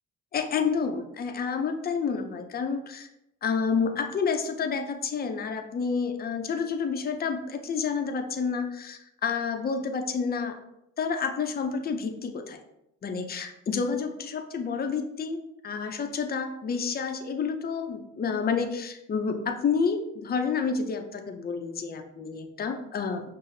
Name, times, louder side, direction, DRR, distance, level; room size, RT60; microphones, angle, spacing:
voice 1, 0.3-3.1 3.4-10.6 11.0-12.6 13.0-15.4 15.6-23.2, left 5 dB, 30° left, 5 dB, 0.5 m, -29 dB
5.6 x 2.0 x 2.6 m, 0.85 s
cardioid pair, 90°, 30 cm